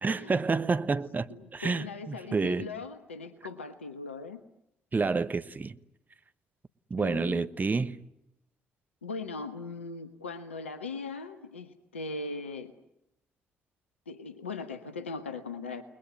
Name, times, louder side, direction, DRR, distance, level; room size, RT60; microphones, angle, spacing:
voice 1, 0.0-1.3 1.5-2.7 4.9-5.8 6.9-8.0, right 4 dB, 25° right, 1.2 m, -29 dB
voice 2, 1.3-4.4 7.0-7.5 9.0-12.7 14.1-15.8, left 3 dB, 85° left, 1.1 m, -39 dB
30.0 x 20.5 x 9.6 m
figure-of-eight pair, 45°, 6 cm